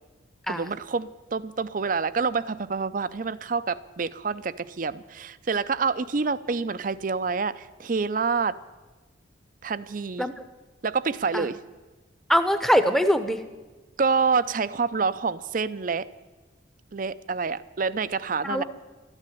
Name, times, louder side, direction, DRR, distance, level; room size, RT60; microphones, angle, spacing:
voice 1, 0.5-8.6 9.6-10.3 10.8-11.6 14.0-16.1 16.9-18.6, right 5 dB, 45° right, 15 dB, 0.5 m, -27 dB
voice 2, 12.3-13.4 18.4-18.6, equal, ahead, 9 dB, 0.8 m, -22 dB
13.0 x 10.5 x 10.0 m, 1.3 s
head